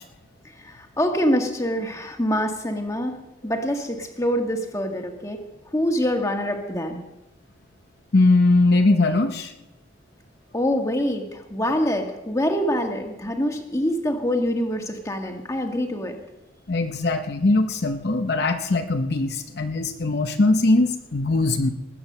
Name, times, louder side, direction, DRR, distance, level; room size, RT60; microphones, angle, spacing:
voice 1, 0.6-5.4 5.7-7.0 10.5-16.2, equal, 15° left, 3 dB, 1.6 m, -25 dB
voice 2, 8.1-9.5 16.7-21.7, left 2 dB, 55° left, 6 dB, 0.8 m, -20 dB
20.0 x 8.7 x 6.6 m, 0.99 s
head